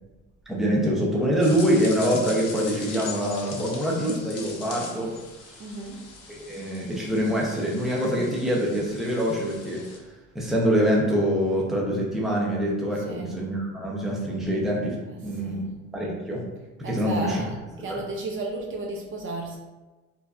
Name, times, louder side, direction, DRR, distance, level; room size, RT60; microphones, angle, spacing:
voice 1, 0.5-5.1 6.5-9.8 10.3-15.0 15.2-15.6 15.9-16.4 16.8-17.4 17.8-18.0, equal, ahead, -4 dB, 0.6 m, -25 dB
sound 1, 1.4-10.0, left 4 dB, 55° left, 0.8 m, -41 dB
voice 2, 5.6-6.0 13.0-13.4 15.0-15.2 15.4-15.7 16.8-19.6, right 2 dB, 40° right, 0 dB, 0.5 m, -34 dB
4.3 x 2.7 x 2.4 m, 1.2 s
cardioid pair, 135°, 30 cm